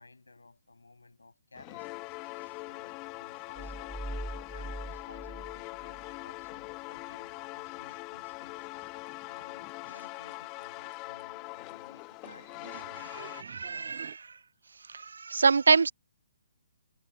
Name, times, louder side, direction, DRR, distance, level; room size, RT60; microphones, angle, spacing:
voice 1, 0.0-2.2 2.7-4.0 4.5-8.6 9.3-13.2 13.7-13.9, left 3 dB, 85° left, 7.7 m, -56 dB
sound 1, 1.6-13.4, left 25 dB, 25° left, 1.8 m, -42 dB
sound 2, 3.6-6.2, right 2 dB, 5° right, 2.7 m, -41 dB
sound 3, 9.1-9.2 9.4-9.7 10.0-10.1 10.3-10.4 10.6-10.7 10.9-11.2 11.7-11.8 12.2-14.2, right 9 dB, 50° right, 2.2 m, -49 dB
voice 2, 13.2-14.3 14.9-15.9, right 4 dB, 75° right, 0.5 m, -26 dB
figure-of-eight pair, 140°, 0 cm